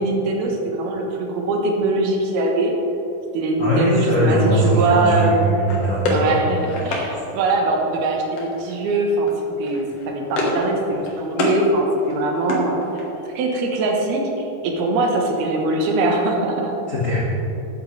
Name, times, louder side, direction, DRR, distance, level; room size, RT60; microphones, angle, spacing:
voice 1, 0.0-2.7 3.3-5.5 6.1-9.3 9.6-12.8 13.3-16.8, right 2 dB, 75° right, 1 dB, 3.0 m, -22 dB
voice 2, 3.6-6.4 6.8-6.9 16.9-17.2, equal, 80° left, -8 dB, 0.7 m, -20 dB
sound 1, 5.7-7.1 8.4-8.8 9.1-9.3 9.6-10.7 11.0-11.6 12.0-13.2, left 2 dB, 55° left, 1.8 m, -26 dB
13.0 x 9.2 x 3.3 m, 3.0 s
omnidirectional pair, 4.5 m